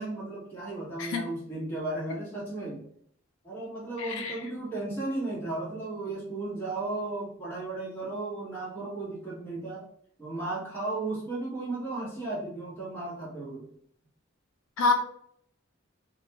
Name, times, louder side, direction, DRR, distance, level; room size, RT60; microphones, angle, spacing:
voice 1, 0.0-2.8 3.4-9.8 10.2-13.7, right 2 dB, 10° left, -7 dB, 1.2 m, -35 dB
voice 2, 4.0-4.3 14.8-14.9, left 3 dB, 80° left, 3 dB, 0.4 m, -26 dB
2.5 x 2.2 x 2.8 m, 0.66 s
head